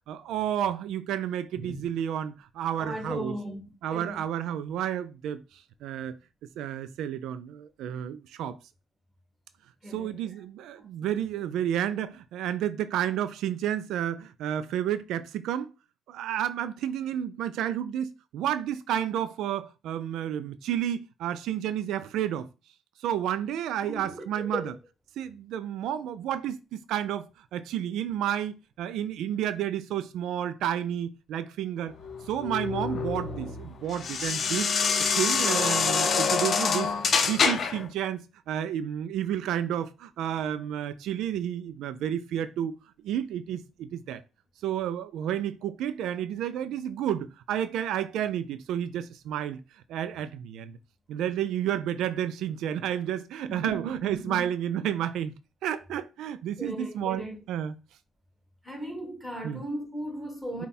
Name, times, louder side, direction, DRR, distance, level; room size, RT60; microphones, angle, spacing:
voice 1, 0.1-3.3 3.8-6.1 6.6-8.6 9.9-15.7 16.1-22.5 23.0-24.7 25.2-27.3 27.5-32.0 32.3-42.7 43.0-44.2 44.6-49.6 49.9-50.8 51.1-55.3 55.6-57.7 59.4-59.6, right 10 dB, 85° right, 0.3 m, -31 dB
voice 2, 1.6-1.9 2.8-3.6 3.9-4.2 9.8-10.2 10.8-11.3 23.9-24.7 53.5-54.5 56.6-57.4 58.6-60.7, right 1 dB, ahead, 1.8 m, -37 dB
sound 1, 32.0-37.9, left 5 dB, 55° left, 0.7 m, -26 dB
5.4 x 2.3 x 4.1 m
cardioid pair, 90°, 0 cm